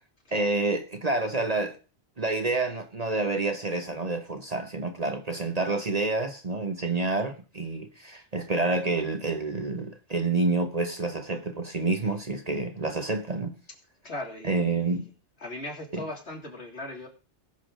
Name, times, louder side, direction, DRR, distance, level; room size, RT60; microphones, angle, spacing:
voice 1, 0.3-1.8 2.2-13.5 14.5-15.0 15.9-16.0, right 3 dB, 35° right, 1.0 m, -28 dB
voice 2, 14.0-15.0 15.4-17.1, left 1 dB, 65° left, 3.0 m, -38 dB
20.0 x 6.7 x 3.8 m
omnidirectional pair, 1.2 m